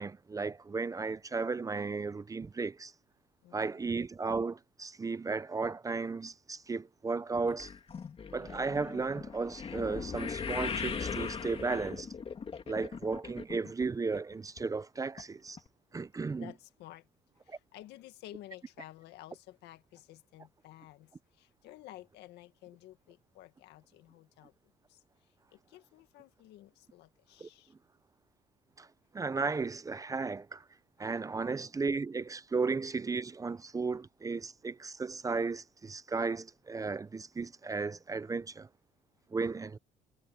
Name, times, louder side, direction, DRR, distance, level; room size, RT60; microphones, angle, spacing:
voice 1, 0.0-2.9 3.5-7.7 8.3-12.1 12.7-15.6 15.9-16.5 17.5-17.6 27.4-27.5 28.8-28.9 29.1-30.6 31.0-38.7 39.3-39.8, right 4 dB, 20° right, 0.6 m, -35 dB
voice 2, 3.4-3.9 16.4-17.1 17.4-24.5 24.9-25.0 25.5-27.7, left 15 dB, 85° left, 1.9 m, -53 dB
sound 1, 7.5-13.9 14.1-14.6 15.2-15.3 15.6-15.7, left 6 dB, 35° left, 2.4 m, -39 dB
cardioid pair, 110°, 17 cm